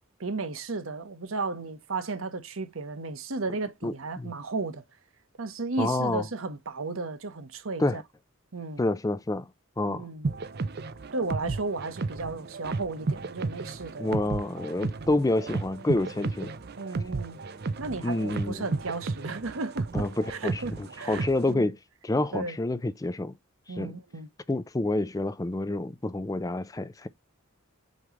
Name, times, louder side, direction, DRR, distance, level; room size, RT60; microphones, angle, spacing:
voice 1, 0.2-4.8 5.4-8.0 8.5-8.9 9.9-10.3 11.1-14.2 16.8-17.4 17.8-21.7 22.3-22.6 23.7-24.3, right 3 dB, 85° right, 1.1 m, -34 dB
voice 2, 3.8-4.3 5.8-6.2 7.8-8.0 8.8-9.5 9.8-10.1 14.0-16.5 18.0-18.7 19.9-21.8 22.0-23.3 23.8-23.9 24.5-27.1, left 2 dB, 15° left, 0.4 m, -28 dB
sound 1, 10.2-21.5, right 3 dB, 50° right, 0.6 m, -34 dB
7.9 x 3.2 x 3.7 m
head